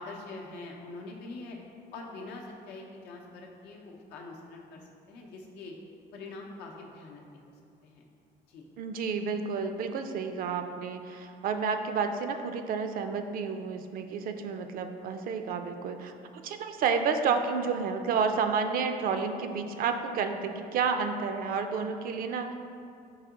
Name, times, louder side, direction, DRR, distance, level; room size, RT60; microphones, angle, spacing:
voice 1, 0.0-1.6 1.9-4.8 5.1-5.7 6.1-7.5 7.8-8.0 8.5-8.6, left 3 dB, 85° left, 0 dB, 0.7 m, -44 dB
voice 2, 8.8-22.5, right 5 dB, 60° right, 7 dB, 0.4 m, -30 dB
4.8 x 2.9 x 3.6 m, 2.4 s
cardioid pair, 110°, 17 cm